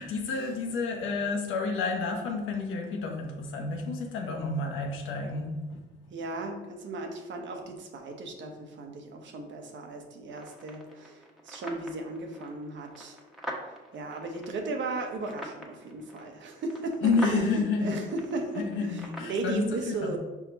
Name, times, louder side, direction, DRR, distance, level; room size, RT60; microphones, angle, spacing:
voice 1, 0.0-5.8 17.0-18.0 18.6-20.2, left 4 dB, 85° left, 1.1 m, -30 dB
voice 2, 6.1-13.2 13.6-20.2, right 2 dB, 70° right, 1.1 m, -36 dB
sound 1, 10.3-19.4, equal, ahead, 1.2 m, -44 dB
5.0 x 4.9 x 4.0 m
cardioid pair, 90°, 20 cm